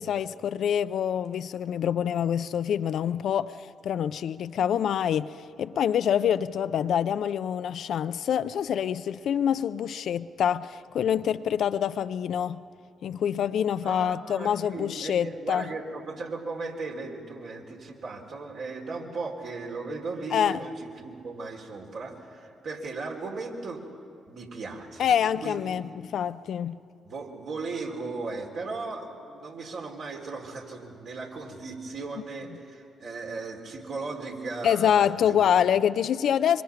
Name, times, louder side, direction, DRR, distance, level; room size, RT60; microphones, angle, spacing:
voice 1, 0.0-12.6 13.0-15.6 20.3-20.6 25.0-26.8 34.6-36.6, left 9 dB, 65° left, 0.5 m, -26 dB
voice 2, 13.8-23.8 24.3-25.9 27.0-35.4, right 3 dB, 65° right, 3.8 m, -37 dB
25.0 x 24.5 x 5.9 m
hypercardioid pair, 45°, 0 cm